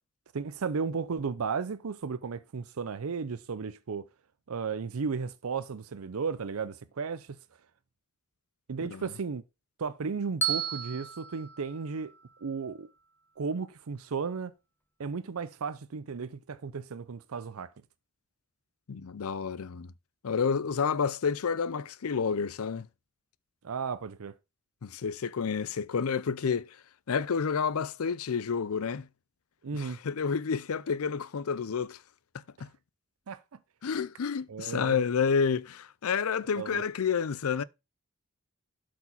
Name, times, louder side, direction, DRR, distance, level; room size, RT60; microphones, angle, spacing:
voice 1, 0.3-4.1 4.5-7.4 8.7-9.4 9.8-12.1 12.4-12.9 13.4-14.5 15.0-17.7 23.6-24.4 29.6-30.0 33.3-33.6 34.5-35.0 36.6-36.8, right 5 dB, 85° right, 0.6 m, -34 dB
Bell, 10.4-12.6, right 6 dB, 10° left, 1.4 m, -34 dB
voice 2, 18.9-19.9 20.2-22.9 24.8-26.8 27.1-29.1 29.7-32.0 32.6-32.7 33.8-37.6, left 6 dB, 90° left, 0.5 m, -30 dB
8.0 x 4.7 x 5.7 m
head